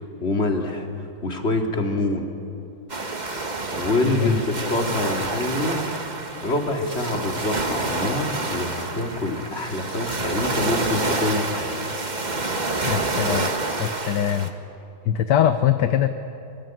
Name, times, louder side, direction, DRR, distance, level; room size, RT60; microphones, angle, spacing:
voice 1, 0.2-0.9 1.2-2.3 3.7-5.8 6.4-11.8, left 2 dB, 30° left, 3 dB, 3.0 m, -26 dB
sound 1, 2.9-14.5, right 3 dB, 25° right, 1.5 m, -28 dB
voice 2, 12.8-13.5 13.8-14.5 15.0-16.1, left 10 dB, 65° left, 9 dB, 1.4 m, -22 dB
25.0 x 24.5 x 9.3 m, 2.7 s
omnidirectional pair, 2.2 m